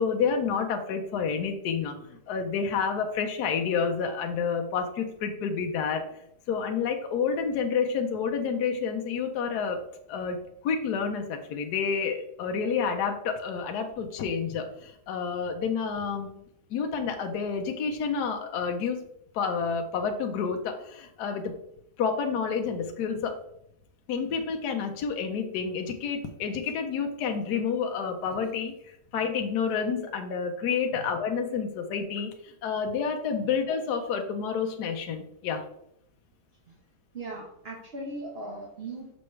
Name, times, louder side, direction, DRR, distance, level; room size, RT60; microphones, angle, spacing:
voice 1, 0.0-6.0 6.5-9.8 10.1-10.4 10.6-16.3 16.7-19.0 19.3-21.5 22.0-23.4 24.1-28.8 29.1-35.6, left 6 dB, 70° left, 4 dB, 1.2 m, -29 dB
voice 2, 37.1-39.2, right 2 dB, 40° right, -2 dB, 1.1 m, -38 dB
6.2 x 5.8 x 3.2 m, 0.77 s
omnidirectional pair, 1.8 m